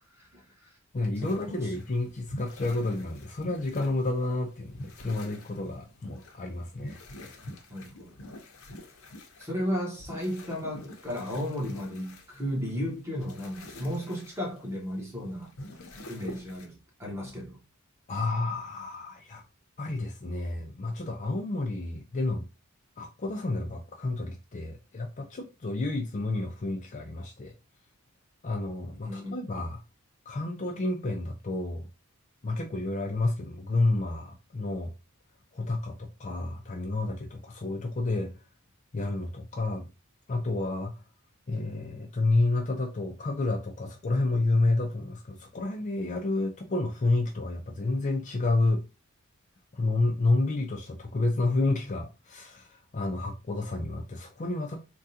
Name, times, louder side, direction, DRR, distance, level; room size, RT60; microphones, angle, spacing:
voice 1, 0.1-0.8 1.2-1.6 7.7-8.2 9.4-15.5 16.1-17.6 29.0-29.4, equal, 15° right, 1.1 m, -34 dB
voice 2, 0.9-7.3 15.8-15.9 18.1-19.4 19.8-22.5 23.0-27.5 28.4-29.8 30.3-31.9 32.4-34.9 35.5-38.4 38.9-39.9 40.3-41.0 41.5-48.8 49.7-54.8, left 2 dB, 35° left, 0.4 m, -30 dB
sound 1, 1.1-16.7, left 1 dB, 70° left, 0.7 m, -46 dB
3.5 x 2.3 x 2.7 m
head